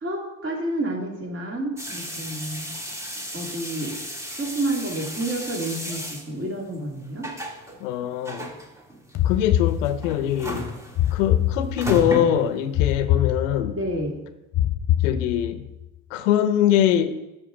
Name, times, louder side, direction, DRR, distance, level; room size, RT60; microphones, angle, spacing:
voice 1, 0.0-2.7 3.3-4.0 4.4-7.3 13.7-14.2, right 1 dB, 30° right, 2.5 m, -29 dB
sound 1, 1.8-12.9, equal, 10° right, 1.3 m, -34 dB
voice 2, 7.8-8.5 9.2-10.7 11.1-13.8 15.0-15.6 16.1-17.2, left 10 dB, 80° left, 0.8 m, -22 dB
sound 2, 9.1-10.3 11.0-12.1 12.7-13.9 14.5-15.7, left 12 dB, 40° left, 0.6 m, -24 dB
8.9 x 6.5 x 3.8 m
hypercardioid pair, 80°, 38 cm